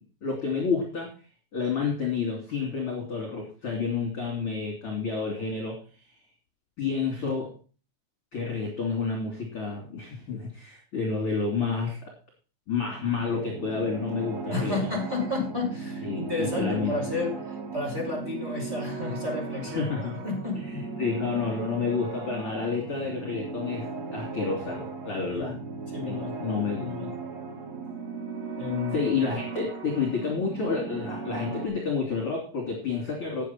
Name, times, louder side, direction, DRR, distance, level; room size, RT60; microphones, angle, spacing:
voice 1, 0.2-1.1 1.5-6.1 6.8-7.5 8.3-12.1 12.7-14.9 16.0-17.0 19.7-20.2 20.5-25.5 26.1-26.9 28.9-33.4, left 5 dB, 35° left, -1 dB, 2.9 m, -30 dB
sound 1, 12.9-31.7, right 4 dB, 50° right, 2.2 m, -37 dB
voice 2, 14.5-19.9 20.2-20.7 25.3-25.6 25.9-26.4 26.7-27.1 28.6-28.9, left 3 dB, 15° right, -1 dB, 5.2 m, -31 dB
10.0 x 9.1 x 5.9 m, 0.37 s
omnidirectional pair, 5.7 m